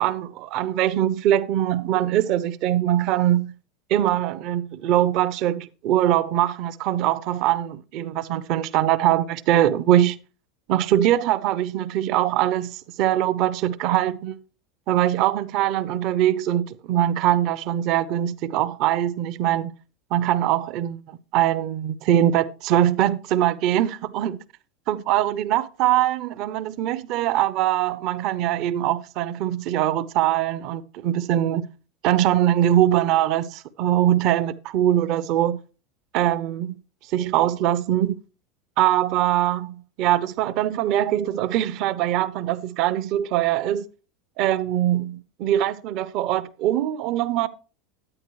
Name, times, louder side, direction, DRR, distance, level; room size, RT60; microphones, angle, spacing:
voice 1, 0.0-3.5 3.9-10.2 10.7-14.4 14.9-19.7 20.1-24.4 24.9-31.7 32.0-35.6 36.1-36.8 37.1-38.2 38.8-43.9 44.4-47.5, right 12 dB, 55° right, 0.6 m, -22 dB
9.7 x 9.5 x 3.1 m
hypercardioid pair, 80°, 0 cm